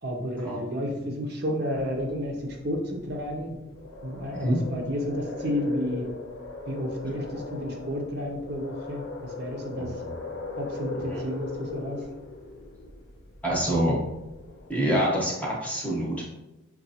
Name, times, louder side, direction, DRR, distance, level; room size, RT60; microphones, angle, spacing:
voice 1, 0.0-3.6 4.0-6.1 6.7-10.0 10.6-12.0, equal, 50° right, 1 dB, 0.6 m, -31 dB
sound 1, 1.7-14.7, left 3 dB, 85° left, 0.6 m, -40 dB
voice 2, 9.8-10.1 11.1-11.2 13.4-14.0 14.7-16.2, equal, 5° left, -3 dB, 0.8 m, -26 dB
5.7 x 2.3 x 2.7 m, 0.98 s
head